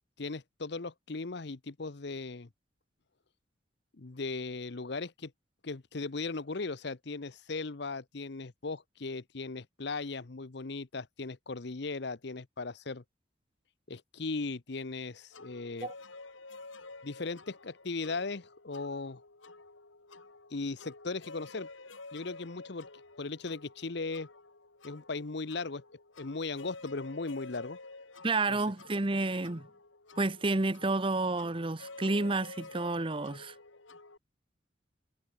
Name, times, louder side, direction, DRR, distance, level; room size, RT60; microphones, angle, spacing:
voice 1, 0.2-2.5 4.0-5.3 5.6-13.0 13.9-15.9 17.0-19.2 20.5-21.7 22.1-22.9 23.2-24.3 24.8-25.8 26.2-27.8 28.5-28.6, left 3 dB, 60° left, 0.8 m, -37 dB
sound 1, 15.3-34.2, left 3 dB, 80° left, 2.8 m, -51 dB
voice 2, 28.2-29.7 30.2-33.5, right 2 dB, 25° right, 0.9 m, -30 dB
head